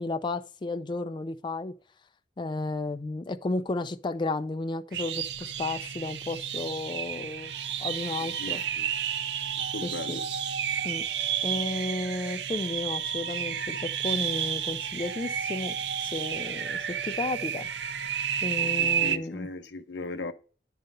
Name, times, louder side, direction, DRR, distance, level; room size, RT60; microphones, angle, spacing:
voice 1, 0.0-1.7 2.4-7.5 7.8-8.6 9.8-10.2 10.8-11.0 11.4-17.7 18.4-19.5, left 2 dB, 25° left, 0.4 m, -33 dB
sound 1, 4.9-19.2, right 8 dB, 75° right, 0.6 m, -31 dB
voice 2, 8.4-8.9 9.7-10.2 18.6-20.3, left 3 dB, 90° left, 0.8 m, -38 dB
10.0 x 3.8 x 5.2 m
head